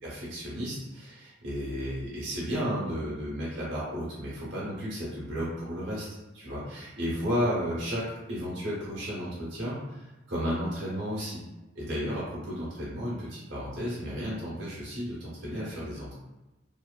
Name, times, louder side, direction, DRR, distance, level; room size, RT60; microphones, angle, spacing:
voice 1, 0.0-6.1 6.3-10.0 10.3-11.4 11.7-16.2, equal, 80° right, -7 dB, 0.9 m, -33 dB
2.8 x 2.2 x 2.3 m, 1.1 s
head